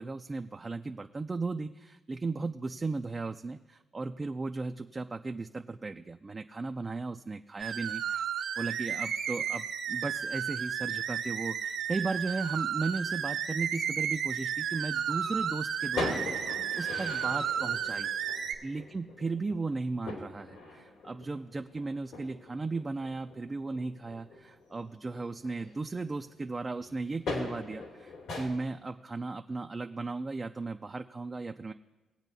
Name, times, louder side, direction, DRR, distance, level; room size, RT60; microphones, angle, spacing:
voice 1, 0.0-8.2 8.6-18.1 18.6-31.7, right 3 dB, 25° right, 6 dB, 0.4 m, -36 dB
sound 1, 7.6-18.5, right 8 dB, 90° right, 1.3 m, -33 dB
sound 2, 15.8-26.2 26.5-28.4, left 2 dB, 85° left, 2.9 m, -41 dB
20.5 x 8.1 x 2.7 m, 1.1 s
cardioid pair, 90°, 0 cm